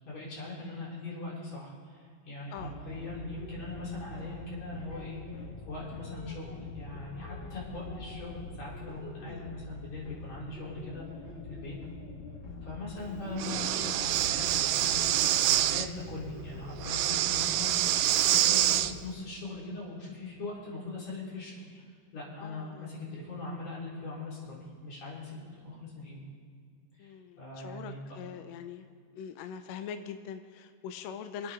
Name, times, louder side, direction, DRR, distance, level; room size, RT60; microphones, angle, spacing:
voice 1, 0.0-5.2 5.6-11.0 11.4-11.8 12.6-21.8 22.1-26.2 27.0-28.2, left 2 dB, 60° left, -7 dB, 5.0 m, -41 dB
sound 1, 2.6-19.0, left 2 dB, 30° left, 1.4 m, -44 dB
Breathing, 13.4-15.9 16.8-18.9, right 13 dB, 80° right, 1.6 m, -26 dB
voice 2, 22.4-22.9 27.0-28.9 29.2-31.5, left 7 dB, 80° left, 8 dB, 1.6 m, -43 dB
25.0 x 8.7 x 3.7 m, 2.1 s
omnidirectional pair, 3.5 m